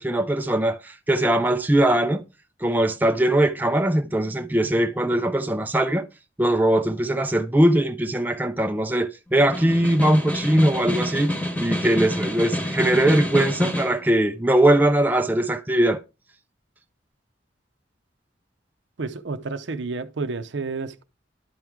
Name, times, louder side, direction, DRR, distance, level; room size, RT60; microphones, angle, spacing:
voice 1, 0.0-2.2 2.6-6.1 6.4-16.0, right 1 dB, 10° right, 0.4 m, -21 dB
Snare drum, 9.4-14.0, left 1 dB, 10° left, 1.1 m, -27 dB
voice 2, 19.0-21.0, right 4 dB, 75° right, 0.6 m, -30 dB
11.0 x 4.6 x 3.6 m
head